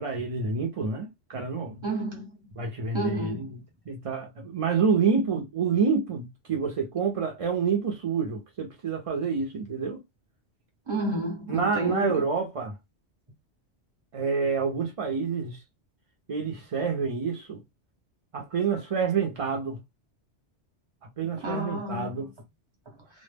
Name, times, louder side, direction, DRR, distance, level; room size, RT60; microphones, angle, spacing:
voice 1, 0.0-1.9 2.6-3.6 3.9-10.0 11.5-12.8 14.1-15.6 16.3-17.6 18.3-19.8 21.0-22.3, right 5 dB, 50° right, 0.4 m, -28 dB
voice 2, 1.8-2.3 2.9-3.5 10.9-12.2 21.4-22.3, equal, 30° right, 0.8 m, -31 dB
2.0 x 2.0 x 3.3 m
omnidirectional pair, 1.2 m